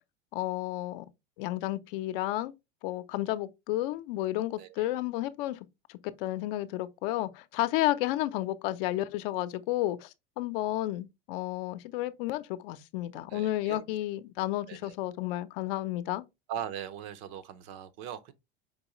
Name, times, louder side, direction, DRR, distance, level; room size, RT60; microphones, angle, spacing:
voice 1, 0.3-1.1 1.4-2.5 2.8-16.2, left 15 dB, 65° left, 0.6 m, -32 dB
voice 2, 13.3-13.8 14.7-14.9 16.5-18.3, right 10 dB, 55° right, 0.8 m, -40 dB
5.3 x 3.1 x 2.9 m
supercardioid pair, 125°, 30 cm